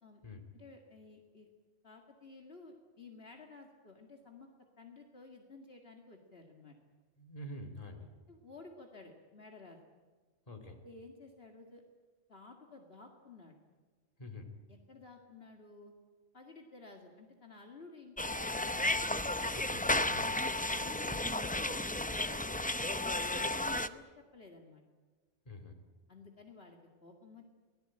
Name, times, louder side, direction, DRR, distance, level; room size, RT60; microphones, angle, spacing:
voice 1, 0.5-1.5 1.8-4.5 4.8-6.8 8.3-9.8 10.8-11.8 12.3-13.5 14.7-15.9 16.3-18.9 20.4-24.8 26.1-27.5, left 3 dB, 55° left, 2 dB, 2.3 m, -54 dB
voice 2, 7.2-8.1 10.5-10.8 14.2-14.5 19.5-20.5 25.4-25.8, left 1 dB, 30° left, 5 dB, 2.9 m, -47 dB
sound 1, 18.2-23.9, left 2 dB, 10° left, 0.4 m, -33 dB
24.5 x 18.5 x 8.8 m, 1.3 s
omnidirectional pair, 1.2 m